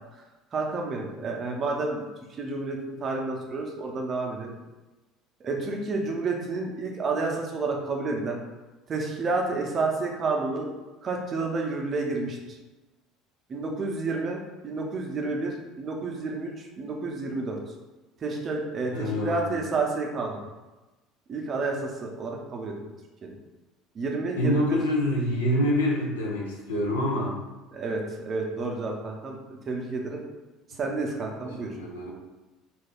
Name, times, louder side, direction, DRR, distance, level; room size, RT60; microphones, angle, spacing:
voice 1, 0.5-2.1 2.4-4.5 5.4-8.4 8.9-10.7 11.0-12.6 13.5-17.6 18.2-20.4 21.3-22.7 23.2-23.3 23.9-24.8 27.7-30.2 30.8-31.7, right 3 dB, 40° right, 1 dB, 0.6 m, -30 dB
voice 2, 18.9-19.6 24.4-27.4 31.4-32.1, left 1 dB, 90° left, -3 dB, 0.6 m, -26 dB
2.4 x 2.2 x 3.5 m, 1.1 s
hypercardioid pair, 70°, 0 cm